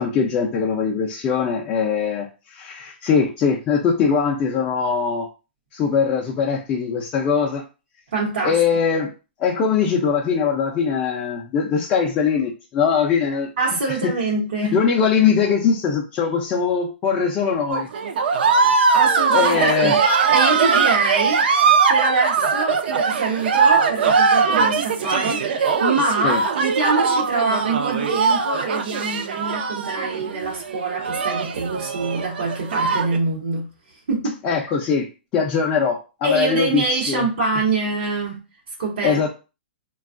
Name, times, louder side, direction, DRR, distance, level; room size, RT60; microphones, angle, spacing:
voice 1, 0.0-5.3 5.7-7.6 8.4-9.1 9.4-13.5 14.0-14.1 14.6-17.9 19.3-20.0 26.2-26.4 34.4-37.3 39.0-39.3, left 6 dB, 20° left, 0.3 m, -21 dB
voice 2, 8.1-8.6 13.6-14.8 18.9-20.0 20.3-33.7 34.1-34.4 36.2-38.4 38.8-39.2, right 3 dB, 80° right, 0.9 m, -25 dB
sound 1, 17.7-33.2, right 5 dB, 65° right, 0.4 m, -20 dB
3.3 x 2.2 x 2.4 m
hypercardioid pair, 160°, 6 cm